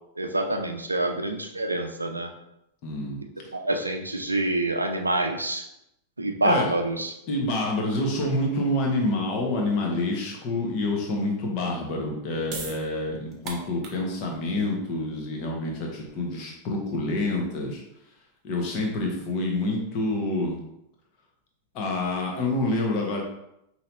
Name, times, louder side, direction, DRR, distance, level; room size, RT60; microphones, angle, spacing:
voice 1, 0.2-2.3 3.5-5.7 6.2-7.1, right 2 dB, 80° right, 5 dB, 0.5 m, -26 dB
voice 2, 2.8-3.2 6.4-6.7 7.3-17.8 18.4-20.6 21.7-23.2, left 2 dB, 40° left, 0 dB, 1.1 m, -27 dB
sound 1, 12.2-18.8, right 4 dB, 35° right, 0.9 m, -44 dB
5.4 x 2.9 x 2.7 m, 0.83 s
figure-of-eight pair, 90°, 0 cm